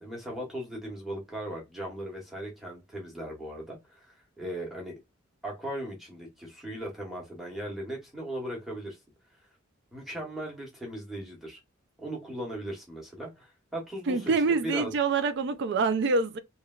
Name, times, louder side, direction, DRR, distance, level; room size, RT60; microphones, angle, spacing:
voice 1, 0.0-4.9 5.4-9.0 9.9-11.6 12.0-14.9, right 1 dB, ahead, 1.0 m, -38 dB
voice 2, 14.1-16.4, right 4 dB, 55° right, 0.4 m, -26 dB
3.1 x 2.2 x 2.3 m
head